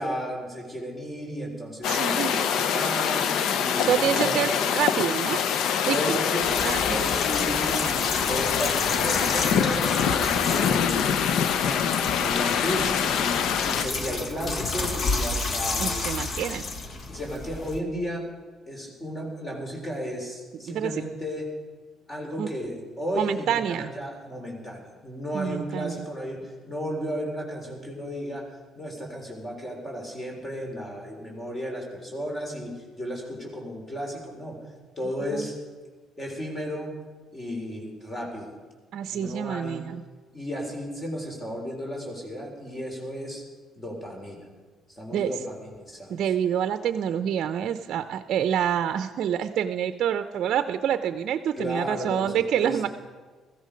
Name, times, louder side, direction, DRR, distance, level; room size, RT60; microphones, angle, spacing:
voice 1, 0.0-4.4 5.9-6.5 6.9-11.9 12.1-16.1 17.1-18.3 18.7-21.5 22.1-28.5 28.8-34.6 35.0-35.5 36.2-36.9 37.3-38.5 39.1-39.8 40.3-43.4 43.8-44.5 44.9-46.2 51.6-52.9, equal, 25° left, 0 dB, 4.1 m, -34 dB
sound 1, 1.8-13.9, left 8 dB, 70° left, 0.7 m, -24 dB
voice 2, 1.9-2.5 3.9-5.4 5.9-6.2 6.6-7.0 15.8-16.6 20.7-21.0 22.4-22.5 23.2-23.9 25.3-26.1 35.3-35.5 38.9-40.0 45.1-45.3 46.1-52.9, right 9 dB, 65° right, 10 dB, 0.5 m, -27 dB
sound 2, 6.4-17.8, left 3 dB, 50° left, 1.4 m, -32 dB
16.5 x 14.0 x 5.2 m, 1.4 s
supercardioid pair, 80°, 0 cm